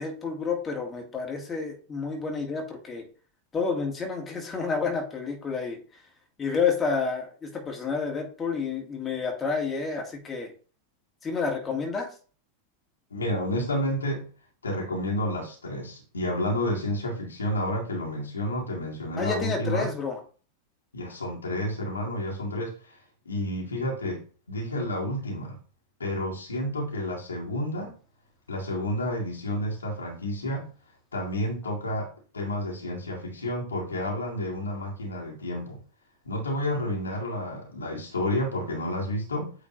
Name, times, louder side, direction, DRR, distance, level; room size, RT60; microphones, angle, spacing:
voice 1, 0.0-3.1 3.5-6.0 6.4-10.5 11.2-12.2 19.2-20.2, left 5 dB, 20° left, 1 dB, 1.9 m, -30 dB
voice 2, 13.1-14.3 14.6-19.9 20.9-22.7 23.3-24.2 24.5-25.6 26.0-28.0 28.5-30.7 31.1-32.1 32.3-35.8 36.3-39.5, left 1 dB, 75° left, -1 dB, 2.0 m, -30 dB
8.5 x 3.9 x 3.0 m, 0.38 s
figure-of-eight pair, 90°, 0 cm